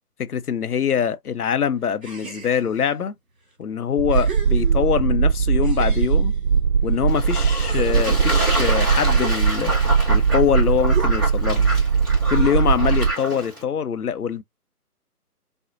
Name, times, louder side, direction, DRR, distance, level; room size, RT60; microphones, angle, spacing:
voice 1, 0.2-3.1 3.6-6.3 6.8-9.7 10.1-11.7 12.3-14.4, left 8 dB, 70° left, 0.6 m, -23 dB
sound 1, 2.0-2.9 3.5-3.6 4.1-5.1 5.6-7.0 7.4-9.9 10.9-11.5, right 6 dB, 60° right, 1.7 m, -38 dB
sound 2, 4.0-13.1, right 6 dB, 85° right, 0.6 m, -20 dB
Fowl / Bird / Water, 7.1-13.6, equal, 15° right, 0.9 m, -29 dB
4.2 x 2.1 x 2.4 m
figure-of-eight pair, 155°, 46 cm